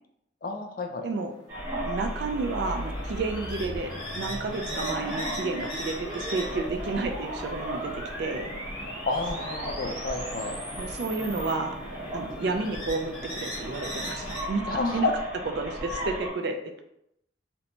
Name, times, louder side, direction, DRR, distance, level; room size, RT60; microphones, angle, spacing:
voice 1, 0.4-1.0 9.0-10.6 14.7-15.1, left 3 dB, 45° left, 4 dB, 0.3 m, -30 dB
sound 1, 1.1-14.4, equal, 20° left, 0.8 m, -41 dB
sound 2, 1.5-16.3, right 1 dB, 10° right, 0.6 m, -37 dB
sound 3, 1.6-11.5, equal, 30° right, 1.0 m, -40 dB
voice 2, 1.8-8.5 10.8-11.8 12.1-14.6 14.9-15.1 15.6-16.6, right 3 dB, 55° right, 5 dB, 0.3 m, -31 dB
2.6 x 2.1 x 2.8 m, 0.78 s
head